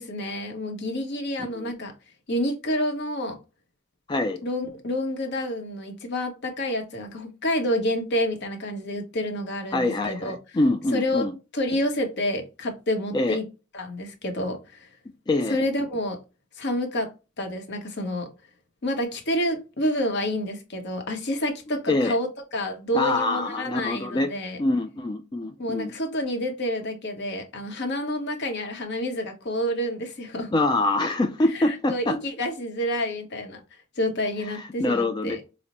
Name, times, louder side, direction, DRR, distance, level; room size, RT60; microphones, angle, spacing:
voice 1, 0.0-1.9 2.3-3.4 4.4-10.4 10.9-11.2 11.5-13.4 13.7-14.9 15.5-16.2 16.6-17.1 17.4-18.3 18.8-24.6 25.6-30.5 31.5-33.6 34.0-35.4, left 1 dB, 60° left, 0.9 m, -28 dB
voice 2, 1.4-1.7 4.1-4.4 9.7-11.3 13.1-13.4 15.3-15.6 21.9-22.2 22.9-24.3 24.6-25.9 30.5-32.2 34.5-35.4, left 2 dB, 20° left, 0.3 m, -25 dB
5.0 x 2.1 x 2.8 m
head